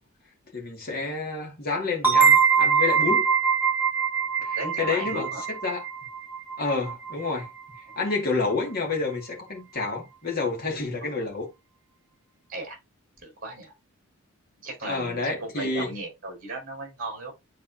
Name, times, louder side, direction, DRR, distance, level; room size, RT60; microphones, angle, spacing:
voice 1, 0.5-3.3 4.4-5.8 6.6-7.5 8.0-11.5 14.8-15.9, left 3 dB, 40° left, 2.2 m, -29 dB
sound 1, 2.0-7.5, right 6 dB, 10° right, 1.8 m, -23 dB
voice 2, 4.6-5.4 7.9-8.0 11.0-11.1 12.5-12.8 13.2-13.7 14.6-17.3, right 2 dB, 40° right, 4.6 m, -36 dB
10.0 x 4.1 x 2.8 m
head